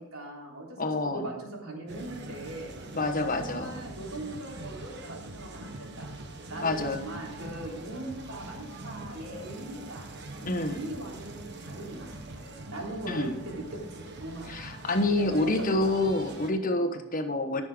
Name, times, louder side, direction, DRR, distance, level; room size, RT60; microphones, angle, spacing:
voice 1, 0.0-0.8 1.0-2.8 3.4-6.1 6.5-10.1 10.6-12.1 12.7-14.9 15.2-15.9 16.8-17.0, right 1 dB, 80° right, -2 dB, 3.5 m, -40 dB
voice 2, 0.8-1.3 2.9-3.8 6.6-7.0 10.4-10.8 13.1-13.3 14.5-17.6, left 2 dB, 40° left, 6 dB, 1.2 m, -28 dB
sound 1, 1.9-16.5, right 2 dB, 50° right, 1.2 m, -43 dB
14.0 x 6.6 x 5.0 m, 0.96 s
head